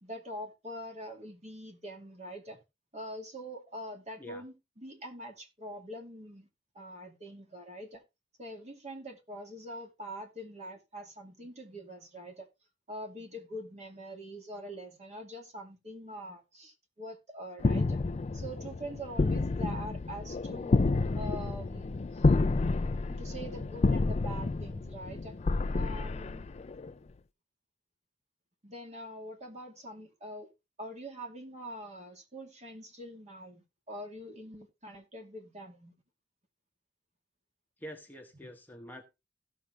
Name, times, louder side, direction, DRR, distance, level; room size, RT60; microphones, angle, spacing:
voice 1, 0.0-2.6 2.9-6.5 6.7-8.0 8.4-12.5 12.9-18.0 18.3-20.8 21.1-22.3 23.1-25.4 25.7-26.5 28.6-30.5 30.8-35.9, equal, 40° right, 2.4 m, -44 dB
sound 1, 17.6-26.9, left 3 dB, 35° left, 0.4 m, -29 dB
voice 2, 37.8-39.0, equal, 10° left, 1.1 m, -46 dB
16.5 x 6.1 x 3.2 m
head